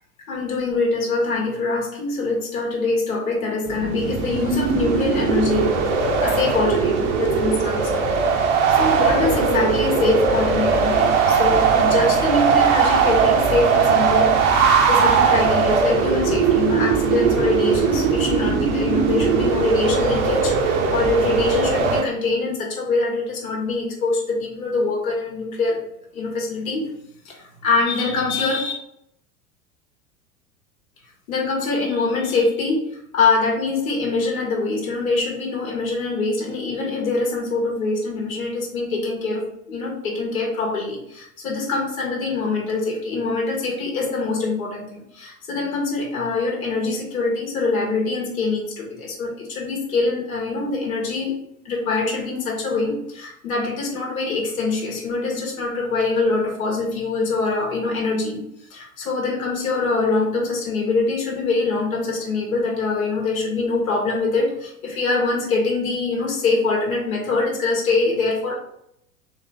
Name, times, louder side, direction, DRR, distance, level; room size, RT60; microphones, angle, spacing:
voice 1, 0.3-8.2 8.7-14.6 14.9-25.8 26.1-26.9 27.2-27.3 27.6-28.7 31.3-32.9 33.1-51.4 51.6-58.4 58.7-68.5, left 3 dB, 70° left, -2 dB, 1.5 m, -24 dB
sound 1, 3.7-22.0, right 5 dB, 60° right, 1.0 m, -19 dB
4.2 x 2.9 x 3.4 m, 0.74 s
figure-of-eight pair, 85°, 43 cm